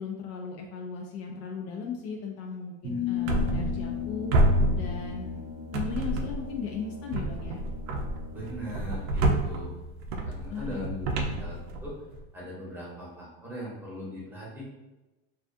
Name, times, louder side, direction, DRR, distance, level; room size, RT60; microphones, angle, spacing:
voice 1, 0.0-4.3 4.8-5.4 5.7-7.6 10.5-11.4, left 5 dB, 55° left, 1 dB, 0.4 m, -37 dB
sound 1, 2.8-6.0, left 11 dB, 45° right, 0.7 m, -35 dB
Brass instrument, 3.1-8.9, left 3 dB, 75° left, 0.8 m, -43 dB
sound 2, 3.3-4.0 4.3-5.4 5.7-6.6 7.1-12.2, right 1 dB, 90° right, 0.5 m, -28 dB
voice 2, 8.3-9.7 10.2-11.5 11.8-12.0 12.3-14.7, equal, 5° right, -6 dB, 0.9 m, -39 dB
2.4 x 2.3 x 2.5 m, 1.1 s
supercardioid pair, 125°, 31 cm